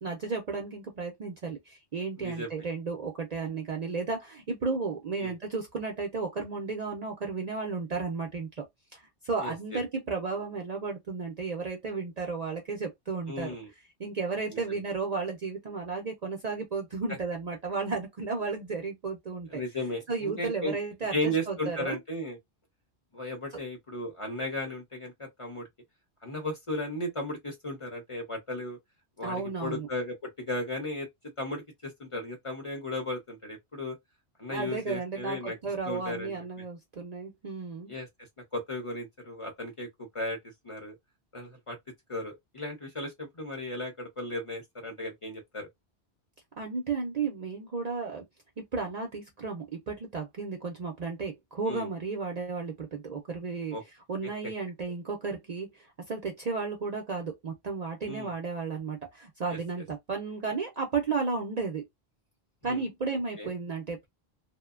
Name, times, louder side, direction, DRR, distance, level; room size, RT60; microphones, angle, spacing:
voice 1, 0.0-8.6 8.9-13.5 14.0-19.6 20.1-22.0 23.5-23.6 29.2-29.9 34.5-37.9 46.6-48.2 48.6-53.8 54.1-61.9 62.6-64.1, right 4 dB, 50° right, 0.5 m, -33 dB
voice 2, 2.2-2.5 5.2-5.3 9.4-9.8 13.3-13.7 14.5-14.6 19.5-20.8 21.1-22.4 23.1-25.7 26.2-28.8 29.2-31.1 31.4-34.0 34.4-35.6 35.9-36.4 37.9-38.1 38.5-39.9 40.1-40.4 40.6-40.9 41.3-41.8 42.1-45.7 51.7-51.9 53.7-53.8 58.1-58.3 59.5-59.6 62.6-62.8 63.4-63.5, left 1 dB, 35° left, 0.7 m, -35 dB
2.6 x 2.1 x 2.4 m
omnidirectional pair, 1.1 m